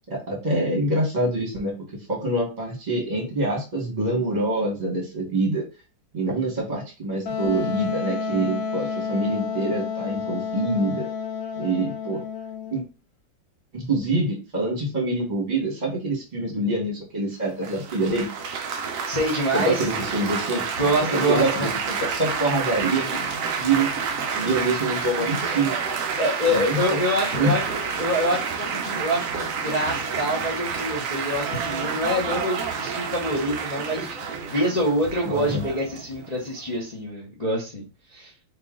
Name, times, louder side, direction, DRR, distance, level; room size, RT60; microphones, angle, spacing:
voice 1, 0.1-1.7 2.1-5.6 6.1-11.1 11.6-12.2 12.7-12.8 13.7-18.3 19.5-23.1 23.6-23.9 24.3-25.7 26.5-27.0 27.4-27.5 35.2-35.6, right 2 dB, 25° right, -1 dB, 1.2 m, -25 dB
Wind instrument woodwind instrument, 7.3-12.8, left 6 dB, 80° left, 1.3 m, -30 dB
Laughter / Applause / Chatter, 17.6-36.8, right 6 dB, 70° right, 0.7 m, -29 dB
voice 2, 19.0-19.9 20.8-21.7 23.1-23.3 26.2-37.8 38.1-38.3, equal, 45° left, -5 dB, 0.5 m, -26 dB
3.0 x 2.9 x 3.7 m, 0.32 s
omnidirectional pair, 2.1 m